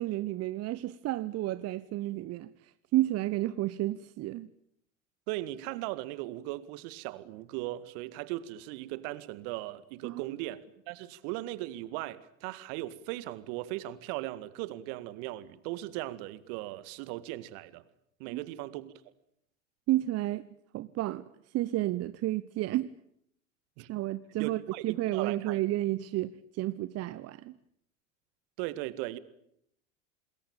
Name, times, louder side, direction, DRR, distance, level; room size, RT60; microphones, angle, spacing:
voice 1, 0.0-4.5 10.0-10.4 18.3-18.4 19.9-20.5 20.7-21.2 21.5-22.9 23.9-27.6, right 16 dB, 40° right, 1.0 m, -31 dB
voice 2, 5.3-17.8 18.2-18.9 23.8-23.9 24.4-25.6 28.6-29.2, right 16 dB, 55° right, 1.9 m, -38 dB
27.0 x 21.5 x 8.9 m
figure-of-eight pair, 80°, 38 cm